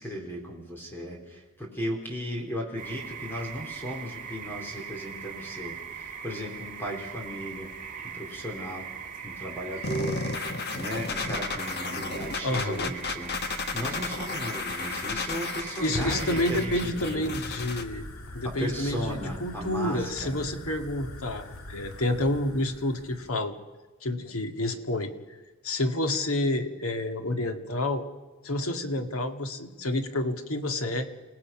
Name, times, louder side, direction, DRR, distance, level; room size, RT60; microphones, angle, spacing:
voice 1, 0.0-7.7 8.0-8.9 9.2-10.2 10.7-17.4 18.4-20.4, equal, 10° left, 0 dB, 3.9 m, -36 dB
sound 1, 2.8-16.8, right 7 dB, 40° right, 1.9 m, -40 dB
sound 2, 9.8-17.8, left 4 dB, 50° left, 1.4 m, -33 dB
voice 2, 12.4-12.9 15.8-18.1 18.3-23.5 24.0-25.1 25.6-28.0 28.4-31.1, left 1 dB, 90° left, 6 dB, 1.9 m, -29 dB
Fire, 14.5-23.4, left 1 dB, 70° left, 2.1 m, -42 dB
28.5 x 18.0 x 6.0 m, 1.2 s
head